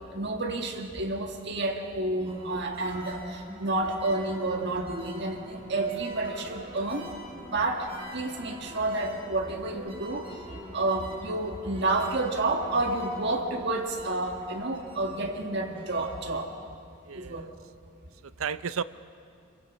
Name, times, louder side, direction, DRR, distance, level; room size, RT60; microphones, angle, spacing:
voice 1, 0.1-7.1 7.4-10.3 10.7-16.5 17.1-17.5, right 2 dB, 55° right, 2 dB, 1.8 m, -30 dB
sound 1, 2.2-16.3, equal, 25° right, 4.6 m, -45 dB
voice 2, 17.0-17.5 18.2-18.8, right 6 dB, 90° right, 14 dB, 0.6 m, -33 dB
26.5 x 24.0 x 6.2 m, 2.3 s
head